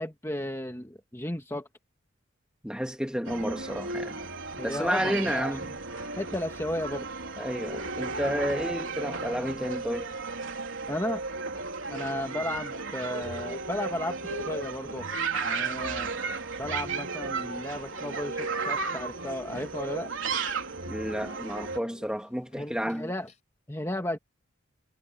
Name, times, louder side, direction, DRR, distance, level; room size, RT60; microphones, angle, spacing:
voice 1, 0.0-1.7 4.6-5.7 6.1-7.1 10.9-11.2 11.9-15.1 15.4-16.2 16.6-20.1 22.5-23.3 23.7-24.2, left 1 dB, 15° left, 1.8 m, -34 dB
voice 2, 2.6-4.2 4.6-5.6 7.4-10.1 15.3-15.5 20.9-23.1, equal, 5° right, 2.4 m, -31 dB
sound 1, 3.2-21.8, right 4 dB, 70° right, 4.0 m, -34 dB
sound 2, 13.3-22.4 22.7-23.0 23.3-23.4, left 2 dB, 35° left, 3.9 m, -48 dB
head